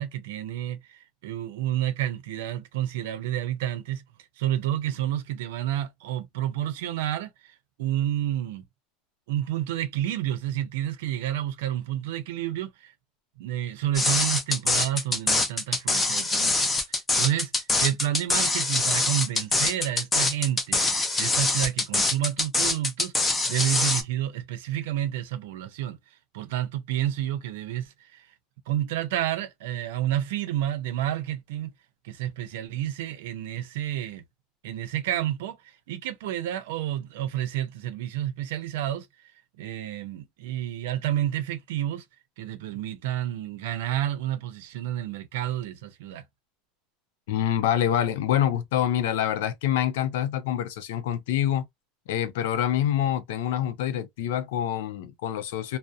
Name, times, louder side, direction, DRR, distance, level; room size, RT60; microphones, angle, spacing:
voice 1, 0.0-4.0 4.4-8.6 9.3-12.9 13.4-16.7 17.2-26.0 26.3-28.3 28.7-31.7 32.0-34.2 34.6-39.1 39.6-42.0 42.4-46.2, right 12 dB, 85° right, 0.5 m, -30 dB
sound 1, 13.9-24.0, left 2 dB, 15° left, 0.5 m, -24 dB
voice 2, 47.3-51.7 52.1-55.8, left 10 dB, 85° left, 0.5 m, -26 dB
2.6 x 2.0 x 2.3 m
cardioid pair, 165°, 0 cm